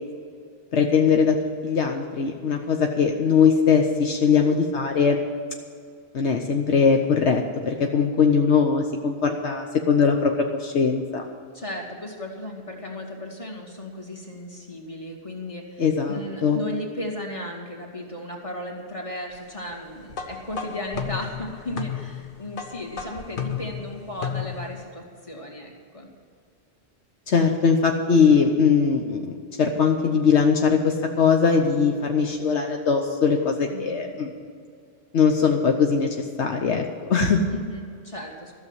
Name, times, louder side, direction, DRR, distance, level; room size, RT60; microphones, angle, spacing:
voice 1, 0.7-1.4 1.6-5.2 6.1-10.3 10.6-11.3 15.8-16.6 27.3-29.3 29.6-34.3 35.1-36.8 37.1-37.4, left 6 dB, 75° left, 3 dB, 1.2 m, -20 dB
voice 2, 11.5-26.1 33.7-34.1 37.5-38.5, left 1 dB, 30° left, 0 dB, 2.3 m, -35 dB
sound 1, 20.1-24.8, left 7 dB, 50° left, 1.0 m, -33 dB
13.5 x 7.1 x 9.8 m, 2.2 s
omnidirectional pair, 1.2 m